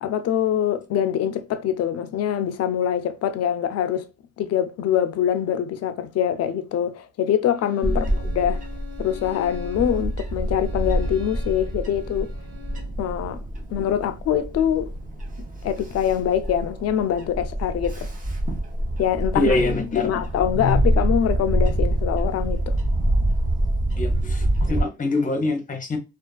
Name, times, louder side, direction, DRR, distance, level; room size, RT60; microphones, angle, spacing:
voice 1, 0.0-4.1 4.4-8.6 9.0-12.3 13.0-13.4 13.7-14.9 15.6-18.1 19.0-19.6 20.0-22.8, left 9 dB, 55° left, 0.4 m, -24 dB
Bowed string instrument, 7.5-13.0, left 8 dB, 60° right, 0.8 m, -44 dB
Bird / Wind, 7.8-24.8, right 1 dB, 25° right, 0.8 m, -26 dB
voice 2, 19.3-20.2 20.5-20.8 24.0-26.0, left 2 dB, 25° left, 0.7 m, -25 dB
2.4 x 2.3 x 2.2 m
cardioid pair, 90°, 30 cm